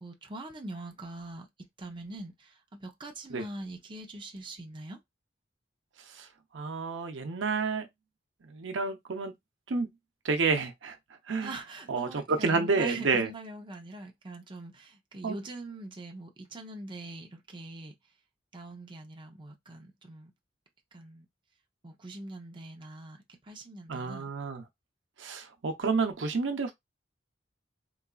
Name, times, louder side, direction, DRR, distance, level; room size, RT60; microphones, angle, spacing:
voice 1, 0.0-5.0 11.4-18.0 18.5-20.3 20.9-21.3 21.8-24.3, right 2 dB, 25° right, 0.6 m, -43 dB
voice 2, 6.5-7.9 8.5-9.3 9.7-9.9 10.2-11.0 11.3-11.5 11.9-13.3 15.2-15.3 23.9-24.6 25.2-26.7, right 4 dB, 85° right, 0.7 m, -29 dB
3.9 x 2.4 x 2.3 m
head